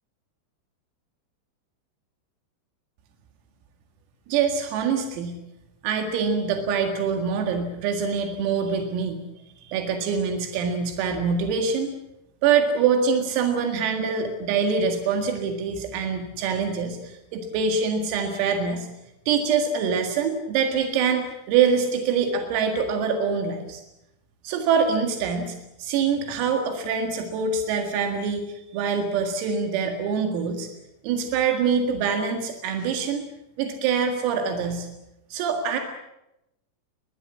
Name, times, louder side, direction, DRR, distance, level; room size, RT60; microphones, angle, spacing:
voice 1, 4.3-5.3 5.8-9.2 9.6-12.0 12.4-18.9 19.3-23.8 24.4-30.7 31.0-33.2 33.6-34.9 35.3-35.8, right 6 dB, 85° right, 4 dB, 4.7 m, -24 dB
21.5 x 21.0 x 8.5 m, 0.89 s
omnidirectional pair, 5.9 m